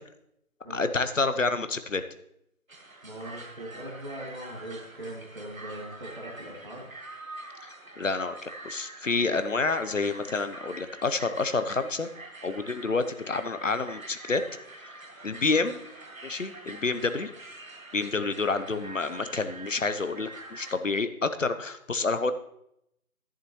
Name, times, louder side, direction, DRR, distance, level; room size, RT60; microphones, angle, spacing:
voice 1, 0.7-2.0 8.0-12.1 12.4-14.4 15.2-15.8 16.2-17.3 17.9-22.3, left 3 dB, 60° left, 11 dB, 0.8 m, -28 dB
sound 1, 2.7-20.8, right 2 dB, 65° right, 1.4 m, -45 dB
voice 2, 3.0-6.9 18.1-18.3, right 1 dB, 40° right, -6 dB, 2.1 m, -40 dB
10.5 x 9.3 x 3.1 m, 0.76 s
figure-of-eight pair, 175°, 43 cm